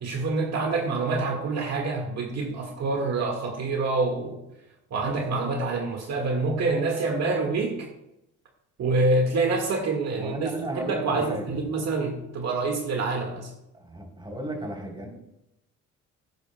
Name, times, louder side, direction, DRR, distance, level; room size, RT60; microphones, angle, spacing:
voice 1, 0.0-4.4 4.9-7.9 8.8-13.5, right 3 dB, 60° right, 2 dB, 1.7 m, -26 dB
voice 2, 10.1-11.6 13.7-15.1, right 1 dB, 15° right, 1 dB, 3.3 m, -34 dB
16.5 x 10.0 x 2.2 m, 0.87 s
cardioid pair, 90°, 30 cm